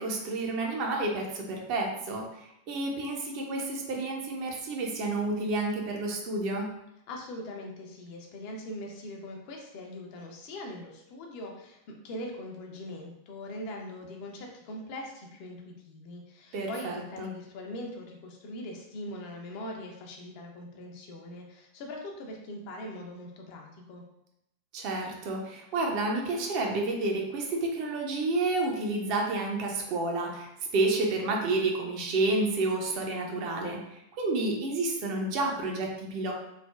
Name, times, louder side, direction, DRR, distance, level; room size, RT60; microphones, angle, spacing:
voice 1, 0.0-6.7 16.5-17.3 24.7-36.3, right 2 dB, 45° right, 0 dB, 0.5 m, -30 dB
voice 2, 7.1-11.8 12.0-24.0, left 1 dB, 45° left, 1 dB, 0.5 m, -41 dB
3.2 x 2.1 x 2.3 m, 0.82 s
figure-of-eight pair, 90°, 0 cm